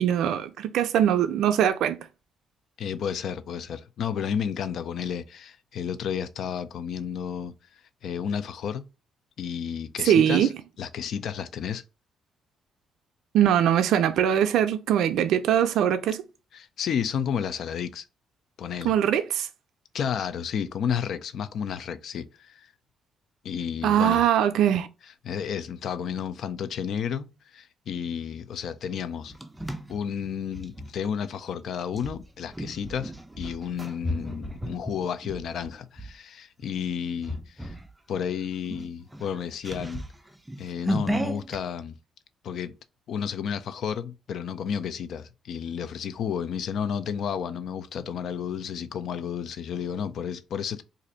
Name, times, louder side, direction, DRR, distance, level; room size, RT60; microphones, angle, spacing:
voice 1, 0.0-2.0 10.0-10.5 13.3-16.2 18.8-19.5 23.8-24.9, right 10 dB, 80° right, 0.4 m, -22 dB
voice 2, 2.8-8.9 9.4-10.5 10.8-11.8 16.5-18.1 18.6-18.9 19.9-22.7 23.4-24.2 25.2-29.3 29.9-37.7 38.1-40.0 40.6-42.0 42.4-42.8 43.1-50.8, left 8 dB, 65° left, 0.4 m, -32 dB
sound 1, 28.9-30.9 31.9-36.1 36.6-36.9 37.2-37.9 38.2-38.3 38.6-41.6, right 1 dB, 10° right, 0.4 m, -34 dB
2.6 x 2.5 x 4.2 m
cardioid pair, 90°, 0 cm